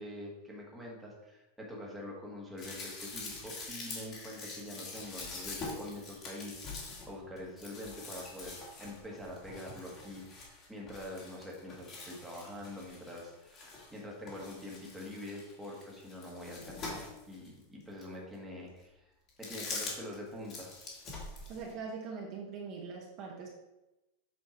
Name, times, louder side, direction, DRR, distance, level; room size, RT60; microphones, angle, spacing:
voice 1, 0.0-19.0 19.4-20.7, left 1 dB, 5° right, -3 dB, 1.4 m, -45 dB
sound 1, 2.6-14.0 14.3-17.5 18.0-18.1 19.3-20.2 20.4-21.7, left 3 dB, 25° left, 1.7 m, -44 dB
voice 2, 21.5-23.5, right 5 dB, 35° right, -1 dB, 1.0 m, -42 dB
7.4 x 4.5 x 4.3 m, 0.98 s
supercardioid pair, 170°, 0 cm